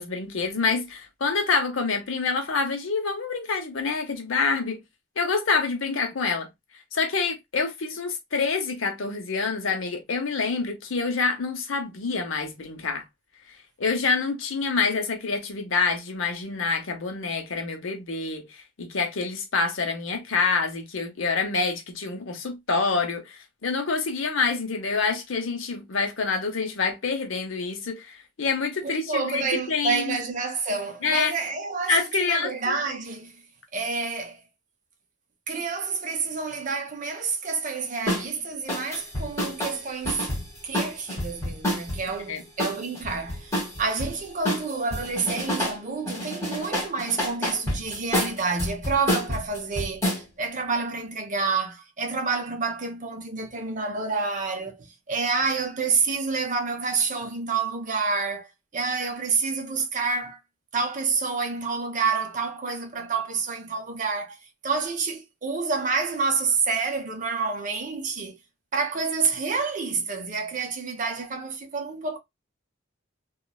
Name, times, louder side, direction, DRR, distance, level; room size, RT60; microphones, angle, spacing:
voice 1, 0.0-4.8 5.2-6.5 6.9-13.0 13.8-30.2 31.0-31.3 31.9-32.8 42.3-42.4, left 4 dB, 80° left, 0.8 m, -27 dB
voice 2, 28.8-33.4 33.7-34.4 35.5-40.2 40.6-60.4 60.7-64.4 64.6-68.3 68.7-72.2, right 4 dB, 40° right, 0.6 m, -28 dB
sound 1, 38.1-38.3 38.7-42.0 42.6-44.1 44.4-45.8 46.1-50.2, left 1 dB, 15° left, 1.3 m, -28 dB
3.0 x 2.3 x 2.3 m
head